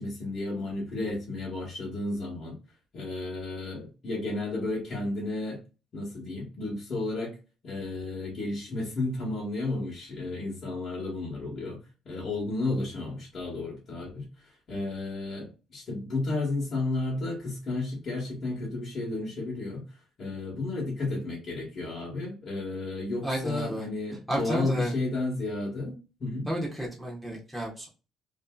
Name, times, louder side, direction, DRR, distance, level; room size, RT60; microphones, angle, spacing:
voice 1, 0.0-2.5 2.9-5.6 5.9-7.3 7.6-19.8 20.2-26.5, left 2 dB, 35° left, -7 dB, 1.1 m, -32 dB
voice 2, 23.2-23.8 24.3-24.9 26.5-27.9, right 1 dB, 5° left, -2 dB, 0.7 m, -31 dB
2.6 x 2.6 x 2.3 m, 0.32 s
cardioid pair, 150°, 0 cm